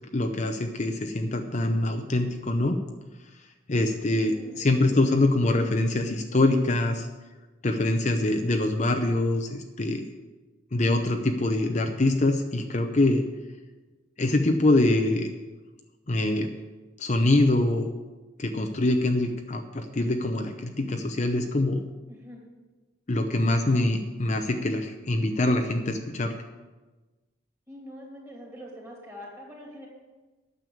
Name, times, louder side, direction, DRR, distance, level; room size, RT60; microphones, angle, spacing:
voice 1, 0.1-2.8 3.7-7.1 7.6-10.1 10.7-13.2 14.2-15.3 16.1-16.5 17.0-17.9 18.4-21.8 23.1-26.3, left 2 dB, 40° left, 5 dB, 0.7 m, -24 dB
voice 2, 4.3-5.0 22.1-22.4 27.7-29.9, equal, 15° right, -2 dB, 2.9 m, -44 dB
9.3 x 6.9 x 8.4 m, 1.2 s
head